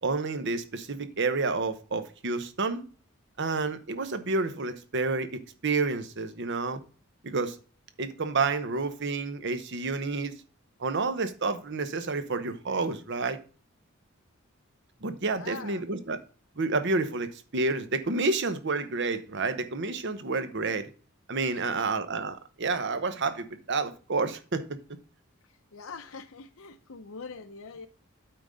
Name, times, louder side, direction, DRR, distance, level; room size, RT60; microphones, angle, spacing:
voice 1, 0.0-2.8 3.4-5.3 5.6-6.8 7.2-7.6 8.0-10.3 10.8-13.4 15.0-16.2 16.6-20.9 21.3-24.6, right 3 dB, 60° right, 0.9 m, -29 dB
voice 2, 15.3-15.8 21.5-21.9 25.5-27.9, left 4 dB, 70° left, 0.7 m, -44 dB
8.8 x 3.8 x 6.5 m
head